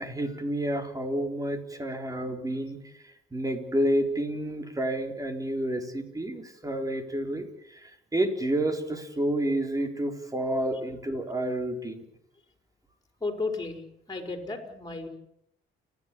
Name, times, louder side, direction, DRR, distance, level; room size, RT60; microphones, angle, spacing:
voice 1, 0.0-2.8 3.3-7.5 8.1-12.0, right 1 dB, 15° right, 5 dB, 4.0 m, -29 dB
voice 2, 13.2-13.8 14.1-15.1, left 3 dB, 20° left, 4 dB, 5.0 m, -33 dB
29.5 x 12.0 x 8.5 m, 0.75 s
cardioid pair, 90°, 20 cm